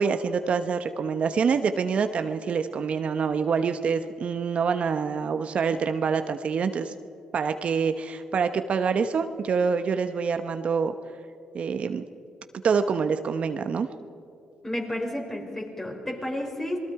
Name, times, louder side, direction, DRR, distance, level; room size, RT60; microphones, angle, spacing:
voice 1, 0.0-6.9 7.3-10.9 11.5-12.0 12.6-13.9, right 6 dB, 55° right, 9 dB, 0.9 m, -26 dB
voice 2, 14.6-16.8, left 1 dB, 15° left, 1 dB, 5.0 m, -31 dB
27.0 x 20.5 x 4.8 m, 2.6 s
cardioid pair, 70°, 2 cm